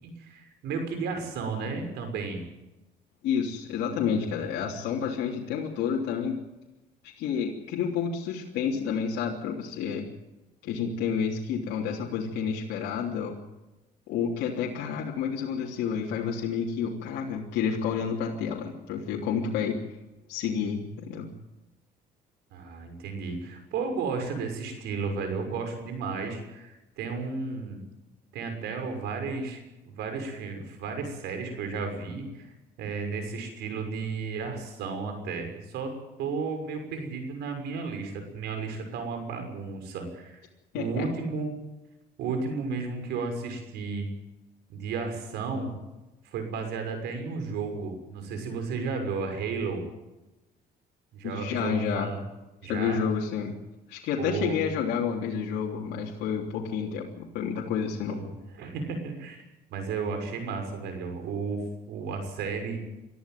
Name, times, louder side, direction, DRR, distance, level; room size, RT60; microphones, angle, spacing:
voice 1, 0.0-2.4 22.5-27.8 28.3-32.5 32.8-35.9 36.2-40.4 40.7-41.5 42.2-44.1 44.7-45.7 46.3-49.8 51.1-52.2 52.6-53.0 54.2-54.6 58.1-59.4 59.7-61.6 61.9-62.8, right 4 dB, 80° right, 6 dB, 6.3 m, -33 dB
voice 2, 3.2-6.4 7.2-10.0 10.6-13.4 14.1-19.7 20.3-21.3 40.7-41.1 51.2-52.1 52.7-53.5 53.9-58.2, left 7 dB, 85° left, -3 dB, 3.3 m, -30 dB
23.5 x 14.0 x 9.2 m, 1.0 s
cardioid pair, 110°, 17 cm